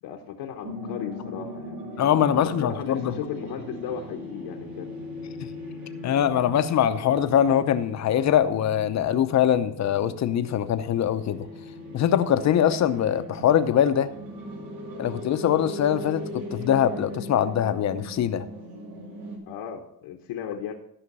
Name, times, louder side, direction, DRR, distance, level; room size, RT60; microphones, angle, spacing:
voice 1, 0.0-1.8 2.3-4.9 19.5-20.7, left 8 dB, 75° left, 2 dB, 1.1 m, -35 dB
sound 1, 0.6-19.4, left 1 dB, 75° right, 2.8 m, -39 dB
voice 2, 2.0-3.1 5.4-5.5 6.0-11.5 11.9-14.1 15.0-18.5, left 10 dB, 40° left, 11 dB, 0.7 m, -23 dB
13.0 x 5.7 x 5.4 m, 0.74 s
cardioid pair, 125°, 41 cm